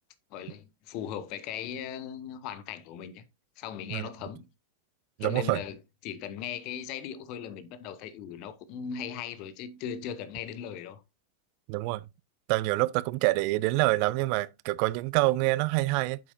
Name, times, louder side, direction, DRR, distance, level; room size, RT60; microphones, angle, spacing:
voice 1, 0.3-3.2 3.6-4.4 5.2-5.8 6.0-11.0, left 8 dB, 40° left, 0.9 m, -38 dB
voice 2, 5.2-5.6 11.7-12.0 12.5-16.2, right 20 dB, 45° right, 0.4 m, -26 dB
9.0 x 7.7 x 2.6 m
figure-of-eight pair, 90°, 0 cm